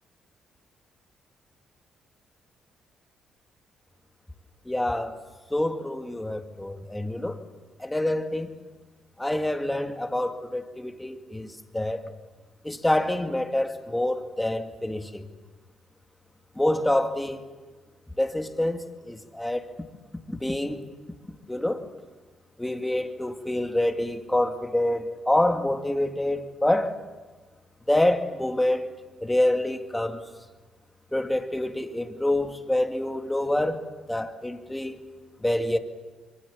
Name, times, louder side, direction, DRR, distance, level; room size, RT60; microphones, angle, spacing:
voice 1, 4.7-5.2 5.5-7.4 7.8-8.5 9.2-11.5 11.7-12.0 12.6-15.2 16.6-17.4 18.2-19.7 20.3-20.9 21.5-21.8 22.6-27.0 27.9-28.9 29.2-30.2 31.1-33.8 34.1-35.0 35.4-35.8, left 1 dB, 10° left, 2.3 m, -26 dB
26.5 x 24.0 x 7.3 m
cardioid pair, 90°, 0 cm